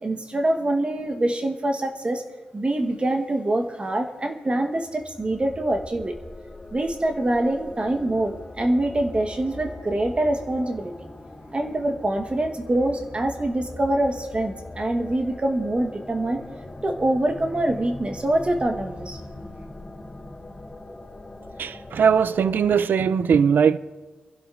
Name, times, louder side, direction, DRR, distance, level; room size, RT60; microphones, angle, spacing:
voice 1, 0.0-2.2 2.5-6.1 6.7-10.9 11.5-16.4 16.8-19.2, right 1 dB, 35° right, 1.1 m, -25 dB
sound 1, 4.8-22.8, left 2 dB, 30° left, 3.4 m, -41 dB
voice 2, 21.6-23.8, right 7 dB, 70° right, 0.4 m, -20 dB
28.5 x 11.5 x 2.5 m
cardioid pair, 60°, 3 cm